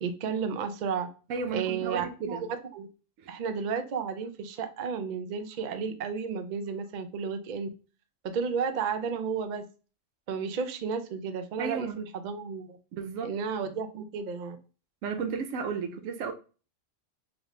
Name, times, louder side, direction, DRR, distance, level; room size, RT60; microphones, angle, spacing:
voice 1, 0.0-1.1 1.5-2.5 2.7-2.9 3.3-7.7 8.2-9.6 10.3-12.8 13.2-14.6, right 6 dB, 70° right, 0.4 m, -32 dB
voice 2, 1.3-2.5 3.2-3.3 11.6-12.0 12.9-13.3 15.0-16.3, right 5 dB, 85° right, 1.0 m, -33 dB
3.3 x 2.5 x 3.1 m
omnidirectional pair, 1.3 m